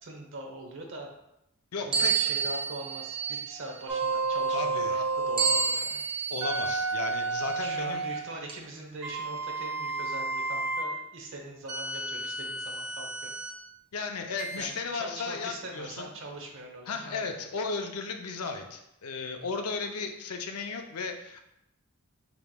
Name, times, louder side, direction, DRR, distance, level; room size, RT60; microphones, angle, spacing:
voice 1, 0.0-1.1 1.8-6.0 7.6-13.3 14.6-17.4, right 2 dB, 60° right, 1 dB, 0.8 m, -42 dB
voice 2, 1.7-2.4 4.5-5.0 6.3-8.0 13.9-16.1 16.9-21.4, left 4 dB, 80° left, 5 dB, 0.5 m, -35 dB
sound 1, 1.9-3.6 5.4-6.8 7.4-7.6 8.5-8.6, right 6 dB, 25° right, 0.5 m, -29 dB
sound 2, 3.9-5.6 6.4-8.3 9.0-10.9 11.7-13.6 14.4-14.6, right 3 dB, 90° right, 0.8 m, -31 dB
6.7 x 3.0 x 2.2 m, 0.86 s
head